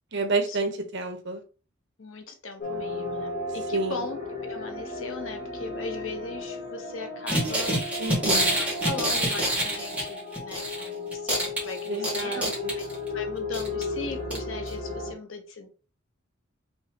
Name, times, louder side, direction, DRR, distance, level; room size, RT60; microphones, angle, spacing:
voice 1, 0.1-1.4 3.7-4.0 8.0-8.6 11.9-12.8, right 3 dB, 60° right, 6 dB, 1.1 m, -29 dB
voice 2, 2.0-8.1 8.6-12.8 13.1-15.7, left 3 dB, 80° left, 5 dB, 1.1 m, -38 dB
sound 1, 2.6-15.1, left 2 dB, 50° left, 1.2 m, -35 dB
sound 2, 7.3-10.9 11.1-13.1 13.5-13.8 14.3-14.4 14.7-14.8, right 1 dB, 5° right, 1.8 m, -27 dB
5.5 x 3.2 x 3.0 m, 0.35 s
head